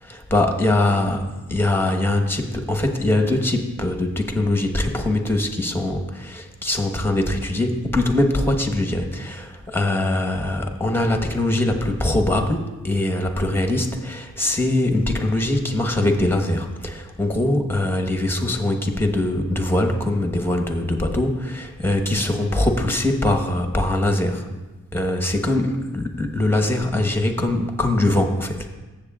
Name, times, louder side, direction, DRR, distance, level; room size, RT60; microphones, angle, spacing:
voice 1, 0.0-1.2 1.5-24.5 24.9-28.7, left 1 dB, 5° left, 4 dB, 1.2 m, -22 dB
15.0 x 7.5 x 2.4 m, 1.1 s
wide cardioid pair, 80°, 31 cm